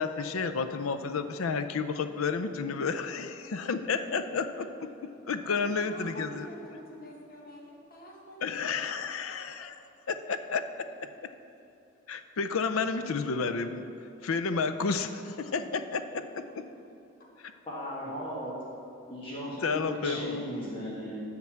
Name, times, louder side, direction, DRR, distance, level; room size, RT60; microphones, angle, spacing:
voice 1, 0.0-4.7 5.3-6.5 8.4-9.7 10.1-11.1 12.1-13.8 14.2-16.2 19.6-20.5, left 5 dB, 90° left, 10 dB, 0.5 m, -31 dB
voice 2, 5.4-8.6, equal, 45° left, -2 dB, 1.6 m, -47 dB
voice 3, 17.7-18.5 19.1-21.2, equal, 25° left, -7 dB, 1.5 m, -36 dB
7.6 x 5.8 x 7.2 m, 2.8 s
head